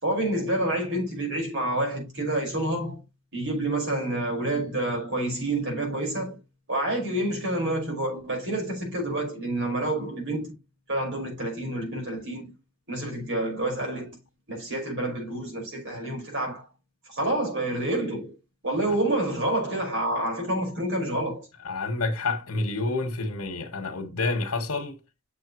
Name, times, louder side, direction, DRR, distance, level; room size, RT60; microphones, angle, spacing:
voice 1, 0.0-3.0 3.3-6.4 6.7-10.5 10.9-12.5 12.9-14.2 14.5-16.7 17.1-18.3 18.6-21.5, right 1 dB, 60° right, 5.4 m, -28 dB
voice 2, 21.6-25.0, left 3 dB, 90° left, 1.5 m, -28 dB
8.2 x 6.7 x 3.1 m
head